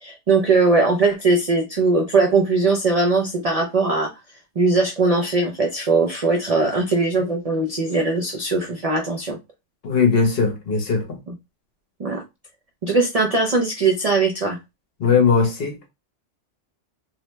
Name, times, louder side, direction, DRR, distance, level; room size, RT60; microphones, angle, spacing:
voice 1, 0.0-4.1 4.6-9.4 12.0-12.2 12.8-14.6, right 3 dB, 65° right, 0.3 m, -20 dB
voice 2, 9.8-11.2 15.0-15.9, left 5 dB, 60° left, 0.9 m, -19 dB
2.7 x 2.1 x 3.0 m
omnidirectional pair, 1.3 m